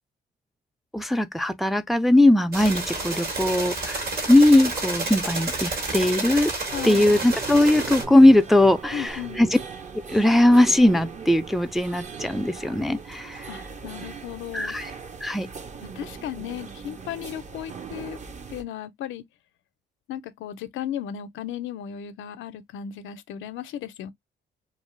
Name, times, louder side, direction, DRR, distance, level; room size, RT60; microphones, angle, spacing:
voice 1, 0.9-6.5 6.8-9.5 10.1-13.5 14.5-14.9 15.2-15.5, left 1 dB, ahead, 0.3 m, -19 dB
sound 1, 2.5-8.0, right 3 dB, 50° right, 1.4 m, -30 dB
voice 2, 6.7-7.2 8.9-9.4 13.5-14.8 15.8-18.2 18.5-19.3 20.1-24.1, left 10 dB, 80° left, 0.5 m, -35 dB
sound 2, 6.7-18.6, right 5 dB, 35° right, 0.7 m, -39 dB
2.5 x 2.4 x 3.0 m
cardioid pair, 90°, 20 cm